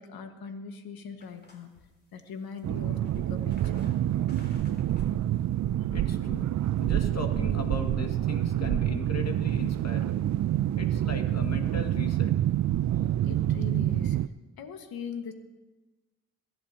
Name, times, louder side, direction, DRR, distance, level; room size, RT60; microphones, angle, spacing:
voice 1, 0.0-1.8 2.1-3.9 13.2-14.2 14.6-15.3, left 6 dB, 65° left, 7 dB, 1.7 m, -41 dB
sound 1, 1.2-7.1, left 1 dB, 25° left, 3.2 m, -57 dB
sound 2, 2.6-14.3, right 12 dB, 50° right, 0.5 m, -27 dB
voice 2, 5.9-6.5 6.8-10.2 10.8-12.3, left 3 dB, 40° left, 5 dB, 2.2 m, -38 dB
24.0 x 11.0 x 2.9 m, 1.2 s
supercardioid pair, 55°, 39 cm